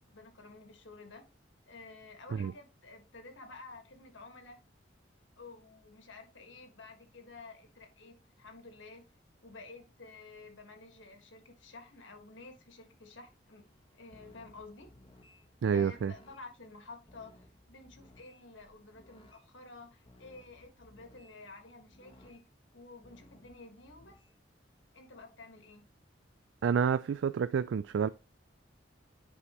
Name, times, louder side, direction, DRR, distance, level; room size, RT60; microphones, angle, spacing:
voice 1, 0.1-1.3 1.7-4.7 5.4-9.1 9.4-13.7 13.9-14.9 15.7-22.5 22.7-24.2 24.9-25.9, left 3 dB, 90° left, 1.5 m, -51 dB
sound 1, 13.6-19.4 20.1-21.4 21.9-22.4 23.0-24.3, left 1 dB, 25° left, 1.2 m, -61 dB
voice 2, 15.6-16.1 26.6-28.1, right 7 dB, 85° right, 0.3 m, -29 dB
9.7 x 4.7 x 2.9 m
head